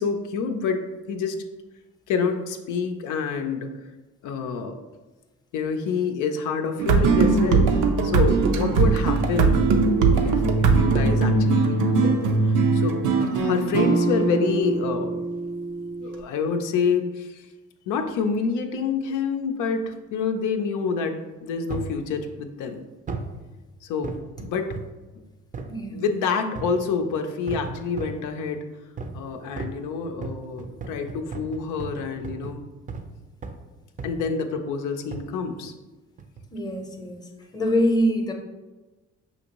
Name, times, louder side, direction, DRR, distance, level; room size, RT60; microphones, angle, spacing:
voice 1, 0.0-1.4 2.1-3.7 4.2-4.8 5.5-9.6 10.0-13.0 13.3-15.2 16.0-17.5 17.9-22.9 23.8-24.2 24.4-24.7 25.9-28.6 29.1-32.6 34.0-35.7, left 5 dB, 85° left, 5 dB, 0.5 m, -27 dB
sound 1, 6.8-16.2, right 4 dB, 85° right, 0.5 m, -21 dB
sound 2, 21.7-22.0 23.1-23.4 24.0-25.0 25.5-25.8 26.6-26.9 27.5-28.3 29.0-29.3 29.6-33.1 33.4-33.7 34.0-34.4 35.1-35.3 36.2-36.5 37.1-37.2, right 4 dB, 25° right, 0.4 m, -36 dB
voice 2, 25.7-26.1 36.5-37.2 37.5-38.3, equal, 15° left, 3 dB, 0.6 m, -24 dB
5.7 x 2.6 x 2.9 m, 1.2 s
cardioid pair, 90°, 30 cm